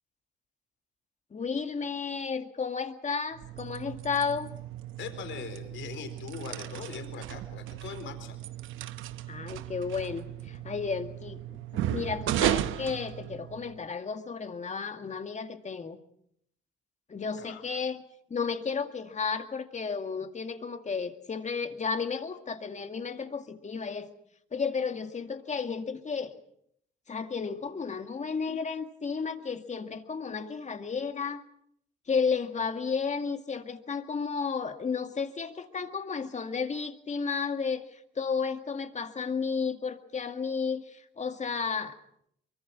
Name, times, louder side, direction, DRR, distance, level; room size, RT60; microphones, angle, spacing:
voice 1, 1.3-4.5 9.3-16.0 17.1-18.0 18.3-24.1 24.5-26.3 27.1-31.4 32.1-41.9, left 5 dB, 35° left, 7 dB, 2.1 m, -33 dB
sound 1, 3.3-13.8, right 12 dB, 85° right, 0.9 m, -35 dB
voice 2, 5.0-8.4 17.4-17.6, left 7 dB, 75° left, 8 dB, 4.2 m, -41 dB
24.0 x 23.5 x 6.2 m, 0.71 s
cardioid pair, 90°, 20 cm